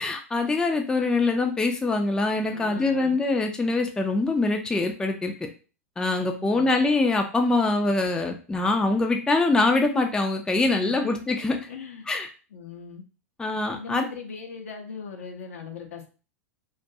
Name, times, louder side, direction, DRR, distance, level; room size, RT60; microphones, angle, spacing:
voice 1, 0.0-5.3 6.0-11.7 12.1-12.3 13.4-14.0, left 3 dB, 10° left, 4 dB, 0.4 m, -24 dB
voice 2, 2.5-3.2 6.3-6.7 10.5-11.2 11.7-12.1 12.5-13.0 13.7-16.1, left 5 dB, 70° left, 3 dB, 0.6 m, -39 dB
2.3 x 2.2 x 2.6 m, 0.35 s
figure-of-eight pair, 90°, 8 cm